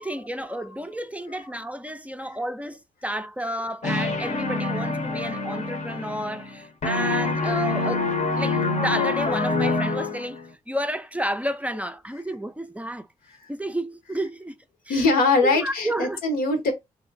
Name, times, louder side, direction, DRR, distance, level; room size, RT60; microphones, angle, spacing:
voice 1, 0.0-13.1 13.5-14.6 14.9-15.0 15.4-16.2, right 1 dB, 10° right, 0.4 m, -31 dB
sound 1, 3.8-6.6 6.8-10.4, left 3 dB, 55° left, 0.7 m, -26 dB
voice 2, 14.9-16.7, left 3 dB, 85° left, 0.8 m, -21 dB
2.9 x 2.7 x 2.5 m
supercardioid pair, 50°, 15 cm